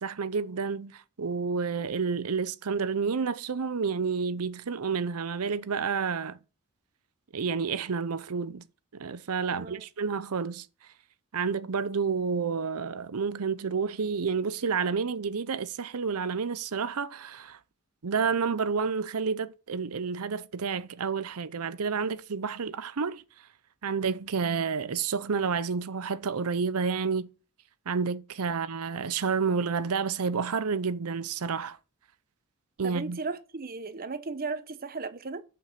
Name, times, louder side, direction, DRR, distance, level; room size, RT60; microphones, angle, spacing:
voice 1, 0.0-6.4 7.3-8.6 9.0-10.7 11.3-17.6 18.0-23.2 23.8-27.3 27.9-31.8 32.8-33.2, right 5 dB, 85° right, 0.7 m, -30 dB
voice 2, 9.5-9.8 32.8-35.4, right 4 dB, 40° right, 0.8 m, -36 dB
7.1 x 5.9 x 6.6 m
head